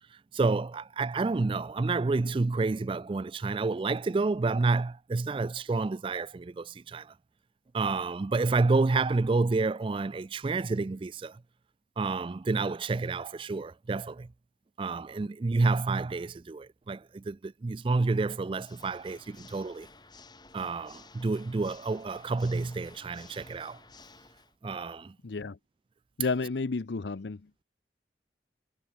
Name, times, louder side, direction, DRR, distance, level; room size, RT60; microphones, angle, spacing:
voice 1, 0.3-7.1 7.7-11.4 12.0-14.3 14.8-19.9 20.5-23.8 24.6-25.1, right 3 dB, 30° right, 0.3 m, -29 dB
Water / Mechanisms, 18.5-24.5, left 3 dB, 25° left, 3.5 m, -54 dB
voice 2, 25.2-25.6 26.2-27.4, left 4 dB, 75° left, 0.6 m, -31 dB
head